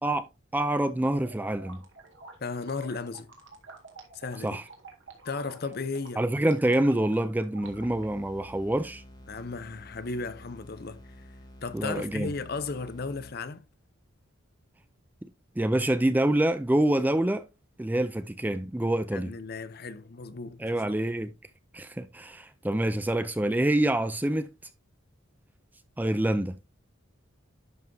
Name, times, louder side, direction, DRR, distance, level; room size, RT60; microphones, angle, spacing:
voice 1, 0.5-1.8 4.4-4.6 6.2-9.0 11.7-12.3 15.2-15.3 15.6-17.4 17.8-19.3 20.6-21.3 21.7-24.5 26.0-26.6, right 1 dB, 10° right, 0.4 m, -26 dB
sound 1, 1.0-8.1, right 3 dB, 60° right, 2.0 m, -49 dB
voice 2, 2.4-3.3 4.1-4.6 5.2-6.2 9.3-11.0 11.6-13.6 19.1-20.7, left 4 dB, 45° left, 0.6 m, -35 dB
sound 2, 7.6-13.7, left 1 dB, 20° left, 1.3 m, -50 dB
11.0 x 5.5 x 2.7 m
head